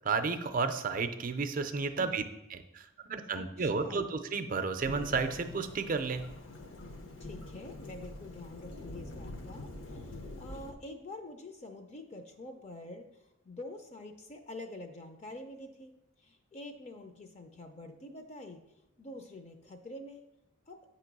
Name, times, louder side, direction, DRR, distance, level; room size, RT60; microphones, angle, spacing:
voice 1, 0.0-2.2 2.5-6.2, right 4 dB, 40° right, 9 dB, 0.5 m, -32 dB
voice 2, 3.3-4.2 7.2-15.9 16.2-18.6 19.0-20.2 20.7-20.8, left 2 dB, 30° left, 6 dB, 0.5 m, -46 dB
Thunderstorm / Rain, 4.8-10.7, left 2 dB, 65° left, 0.9 m, -45 dB
8.4 x 3.0 x 6.0 m, 0.89 s
head